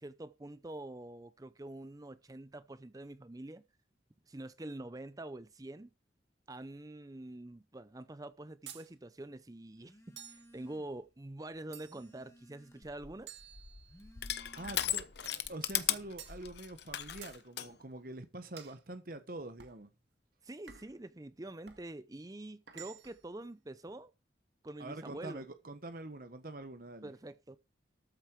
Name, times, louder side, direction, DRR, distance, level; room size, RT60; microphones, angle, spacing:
voice 1, 0.0-3.6 4.3-5.9 6.5-13.3 20.4-24.1 24.6-25.4 27.0-27.6, right 1 dB, 20° right, 0.5 m, -46 dB
sound 1, 8.7-8.9 10.2-10.5 11.7-12.2 13.3-14.2 15.2-15.5 16.2-16.4 17.2-17.4 18.6-18.8 19.6-19.8 20.7-21.0 21.7-21.9 22.7-23.3, right 10 dB, 70° right, 2.0 m, -52 dB
Telephone, 9.8-11.1 11.4-13.1 13.7-15.2, equal, 15° left, 2.4 m, -60 dB
Crushing, 12.8-17.7, left 11 dB, 65° left, 0.9 m, -37 dB
voice 2, 14.5-15.1 15.5-19.9 24.8-27.1, right 2 dB, 50° right, 1.2 m, -45 dB
13.5 x 8.5 x 4.6 m
head